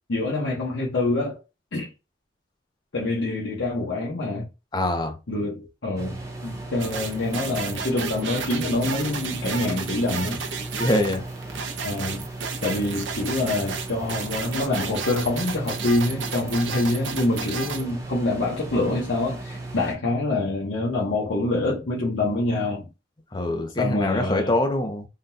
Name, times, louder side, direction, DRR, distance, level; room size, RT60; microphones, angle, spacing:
voice 1, 0.1-1.4 1.7-1.9 2.9-4.5 5.3-10.4 11.8-12.2 12.6-22.9 23.8-24.5, left 2 dB, 85° left, 0.9 m, -26 dB
voice 2, 4.7-5.2 10.8-11.2 23.3-25.1, left 1 dB, 25° left, 0.6 m, -24 dB
sound 1, 6.0-20.0, right 2 dB, 20° right, 0.7 m, -36 dB
sound 2, 6.8-17.9, right 5 dB, 85° right, 0.6 m, -33 dB
3.7 x 2.3 x 2.6 m
head